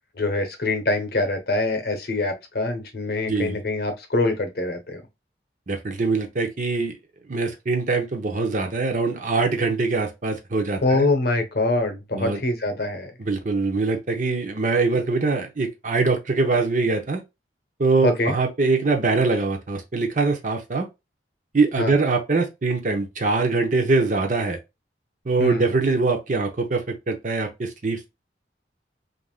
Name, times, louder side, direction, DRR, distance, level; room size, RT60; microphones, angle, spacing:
voice 1, 0.2-5.0 10.8-13.1 18.0-18.4 21.8-21.9 25.4-25.6, left 2 dB, 55° left, 0.8 m, -24 dB
voice 2, 3.3-3.6 5.7-6.9 7.3-11.1 12.1-12.4 13.2-17.2 17.8-20.9 21.5-24.6 25.3-28.1, right 3 dB, 45° right, 0.6 m, -23 dB
3.4 x 2.5 x 2.3 m
head